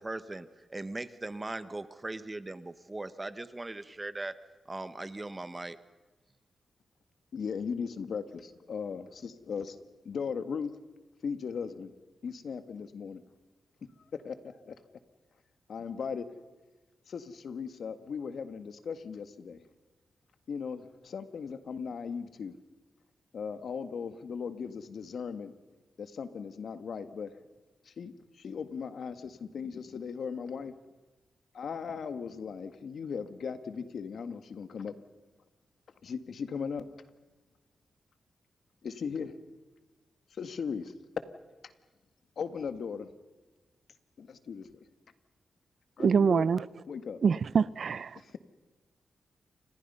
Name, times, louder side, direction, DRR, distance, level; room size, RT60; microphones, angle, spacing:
voice 1, 0.0-4.3 4.7-5.8, right 2 dB, 25° right, 1.4 m, -39 dB
voice 2, 7.3-9.8 10.1-10.7 11.2-11.9 12.2-13.2 14.0-14.8 15.7-16.3 17.1-19.6 20.5-22.5 23.3-25.6 26.0-27.4 27.8-30.7 31.5-34.9 36.0-36.9 38.8-39.3 40.3-40.9 42.4-43.1 44.2-44.9 46.0-46.5 46.9-47.2 48.2-48.4, left 6 dB, 70° left, 1.8 m, -38 dB
voice 3, 46.0-46.7 47.2-48.2, right 6 dB, 65° right, 0.7 m, -25 dB
29.5 x 26.5 x 5.7 m
cardioid pair, 65°, 0 cm